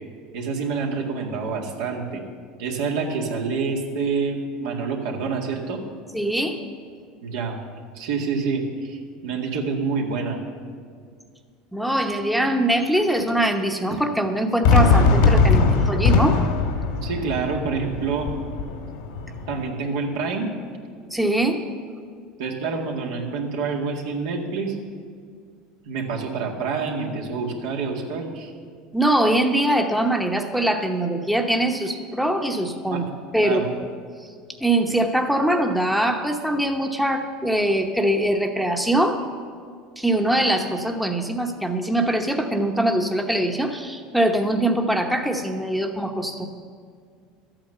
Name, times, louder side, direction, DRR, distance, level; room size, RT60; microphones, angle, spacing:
voice 1, 0.3-2.2 2.6-5.8 7.2-7.6 8.0-10.4 17.0-18.3 19.5-20.5 22.4-24.8 25.9-28.5 32.9-33.0 33.4-33.7, right 4 dB, 80° right, 0 dB, 2.0 m, -27 dB
voice 2, 6.1-6.6 11.7-16.4 21.1-21.6 28.9-33.0 33.3-33.6 34.6-39.2 40.0-46.5, right 1 dB, ahead, 3 dB, 0.9 m, -22 dB
Fireworks, 14.6-19.7, left 4 dB, 80° left, 1.8 m, -20 dB
13.0 x 8.8 x 6.7 m, 2.1 s
supercardioid pair, 110°, 2 cm